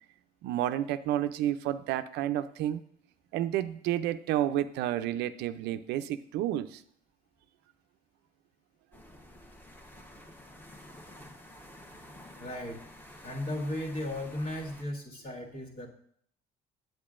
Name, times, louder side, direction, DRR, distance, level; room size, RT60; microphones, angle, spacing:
voice 1, 0.4-2.8 3.3-6.8, right 12 dB, 85° right, 12 dB, 0.4 m, -30 dB
sound 1, 8.9-14.8, left 1 dB, 10° left, 0.9 m, -51 dB
voice 2, 12.4-12.8 13.2-15.9, left 1 dB, 60° left, -1 dB, 1.7 m, -36 dB
8.7 x 7.9 x 2.5 m, 0.65 s
cardioid pair, 110°, 17 cm